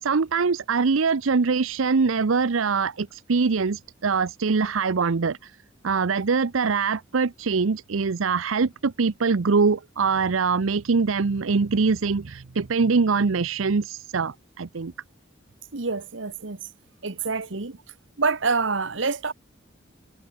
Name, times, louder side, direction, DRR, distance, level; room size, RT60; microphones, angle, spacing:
voice 1, 0.0-5.6 5.8-14.9, right 4 dB, 85° right, 0.7 m, -23 dB
voice 2, 15.7-16.6 17.0-17.8 18.2-19.3, right 4 dB, 65° right, 1.3 m, -26 dB
head